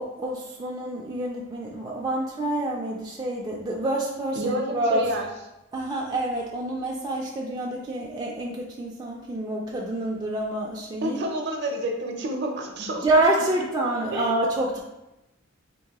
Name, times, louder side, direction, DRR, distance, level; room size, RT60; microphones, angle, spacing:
voice 1, 0.0-5.0 5.7-11.2 12.8-14.8, right 1 dB, 20° right, -3 dB, 0.3 m, -27 dB
voice 2, 4.3-5.3 11.0-13.1 14.1-14.2, right 1 dB, 55° right, 2 dB, 0.6 m, -29 dB
3.7 x 2.5 x 2.8 m, 0.93 s
head